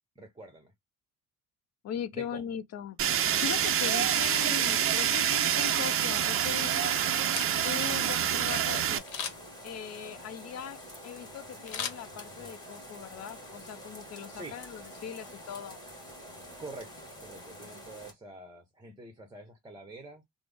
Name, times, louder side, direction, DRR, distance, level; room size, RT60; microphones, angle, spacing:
voice 1, 0.2-0.7 2.1-2.4 3.8-4.1 7.8-8.0 14.3-14.6 16.6-16.9 17.2-20.2, right 2 dB, 10° right, 0.7 m, -46 dB
voice 2, 1.8-7.0 7.6-9.1 9.6-15.8, left 9 dB, 45° left, 0.5 m, -40 dB
Fire, 3.0-9.0, right 9 dB, 40° right, 0.4 m, -27 dB
sound 1, 6.7-18.1, equal, 10° left, 1.4 m, -47 dB
Camera, 7.2-7.9 9.1-9.6 11.7-12.6 13.0-13.1, left 7 dB, 70° left, 1.0 m, -38 dB
3.5 x 2.0 x 3.3 m
cardioid pair, 120°, 35 cm